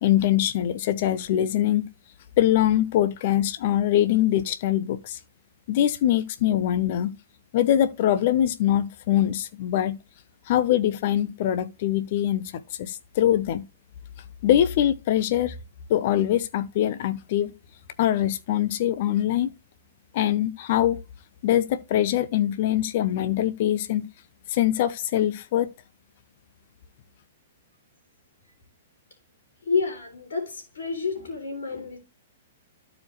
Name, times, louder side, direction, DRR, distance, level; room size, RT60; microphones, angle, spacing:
voice 1, 0.0-1.9 2.4-5.2 5.7-7.1 7.5-10.0 10.5-13.7 14.4-15.6 15.9-17.5 18.0-19.5 20.1-21.0 21.4-24.1 24.5-25.7, left 12 dB, 55° left, 0.6 m, -23 dB
voice 2, 29.6-32.0, left 5 dB, 75° left, 3.0 m, -29 dB
13.0 x 4.9 x 3.1 m
hypercardioid pair, 120°, 0 cm